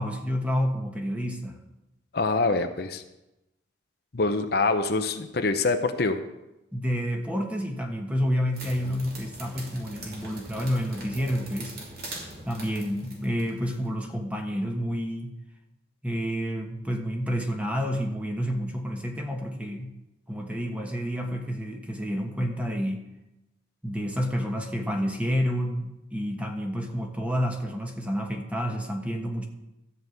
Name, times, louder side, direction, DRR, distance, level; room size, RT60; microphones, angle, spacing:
voice 1, 0.0-1.5 6.7-11.8 12.5-15.4 16.0-20.0 20.3-23.0 23.8-29.4, equal, 10° right, 2 dB, 1.3 m, -29 dB
voice 2, 2.1-3.0 4.1-6.2, left 3 dB, 60° left, 7 dB, 0.8 m, -25 dB
sound 1, 8.5-13.9, right 2 dB, 55° right, 3.1 m, -42 dB
13.0 x 5.4 x 8.0 m, 0.95 s
head